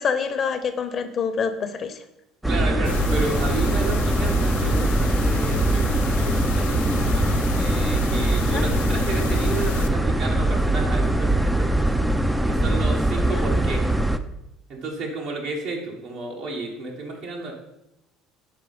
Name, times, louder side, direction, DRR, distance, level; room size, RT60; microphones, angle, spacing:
voice 1, 0.0-2.0 8.5-8.6 13.2-13.5, left 6 dB, 40° left, 8 dB, 0.9 m, -26 dB
sound 1, 2.4-14.2, right 1 dB, 5° right, 0.5 m, -22 dB
voice 2, 2.5-13.8 14.7-17.5, right 3 dB, 65° right, -2 dB, 1.5 m, -32 dB
sound 2, 2.8-9.9, left 6 dB, 80° left, 0.4 m, -30 dB
6.0 x 4.5 x 5.4 m, 0.86 s
hypercardioid pair, 70°, 0 cm